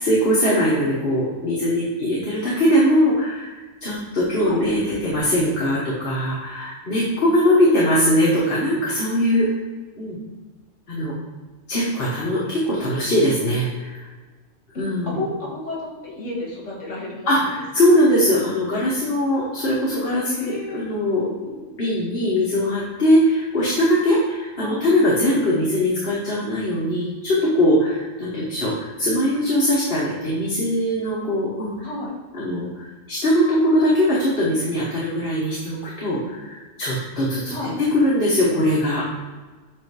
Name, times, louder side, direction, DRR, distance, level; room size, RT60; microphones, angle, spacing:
voice 1, 0.1-9.5 10.0-10.2 10.9-11.1 11.7-14.0 14.8-15.2 17.3-21.3 21.8-31.7 32.3-37.5 37.8-39.2, equal, 50° left, -6 dB, 1.3 m, -21 dB
voice 2, 14.7-17.5 17.9-18.0 20.2-20.8 24.6-24.8 31.8-32.1 37.5-37.8, left 2 dB, 65° left, -4 dB, 2.2 m, -32 dB
7.6 x 2.7 x 4.6 m, 1.3 s
omnidirectional pair, 1.3 m